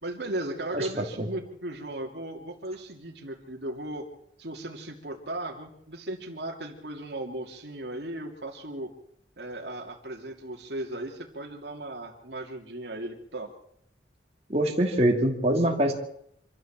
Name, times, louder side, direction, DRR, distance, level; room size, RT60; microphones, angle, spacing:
voice 1, 0.0-4.1 4.4-8.9 9.4-13.5, right 1 dB, 70° right, 2 dB, 2.7 m, -36 dB
voice 2, 0.7-1.3 14.5-15.9, right 1 dB, 35° right, 0 dB, 2.8 m, -24 dB
26.0 x 13.5 x 7.5 m, 0.74 s
head